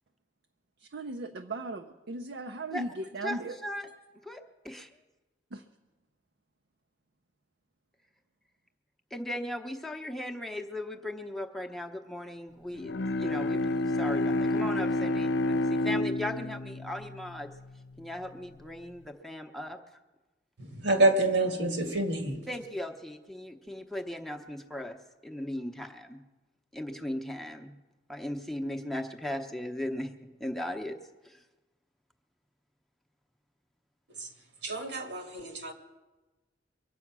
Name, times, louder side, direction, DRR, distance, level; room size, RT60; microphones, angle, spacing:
voice 1, 0.8-3.5 5.5-5.6, right 2 dB, 65° right, 5 dB, 0.6 m, -37 dB
voice 2, 3.2-3.9 4.2-5.0 9.1-17.5 18.0-20.0 22.5-25.0 25.2-26.2 26.7-27.8 28.1-31.0 31.2-31.4, left 1 dB, ahead, 3 dB, 0.8 m, -37 dB
Bowed string instrument, 12.7-18.1, left 2 dB, 70° left, 0.5 m, -30 dB
voice 3, 20.6-22.4 34.2-34.3 34.6-35.7, right 2 dB, 85° right, 4 dB, 2.0 m, -27 dB
23.5 x 8.3 x 6.1 m, 1.1 s
head